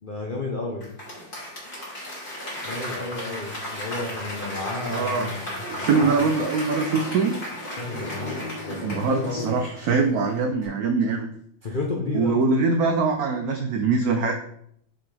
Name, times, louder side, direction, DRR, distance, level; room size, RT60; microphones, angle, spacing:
voice 1, 0.0-0.9 2.6-6.3 7.8-9.5 11.6-12.4, left 3 dB, 65° left, 0 dB, 0.5 m, -32 dB
Applause / Crowd, 0.8-10.2 10.6-10.7, left 1 dB, 25° left, 2.2 m, -34 dB
voice 2, 4.9-5.3 5.7-7.4 8.8-11.3 12.1-14.3, right 4 dB, 85° right, 4 dB, 0.8 m, -23 dB
5.7 x 5.6 x 3.4 m, 0.72 s
omnidirectional pair, 2.2 m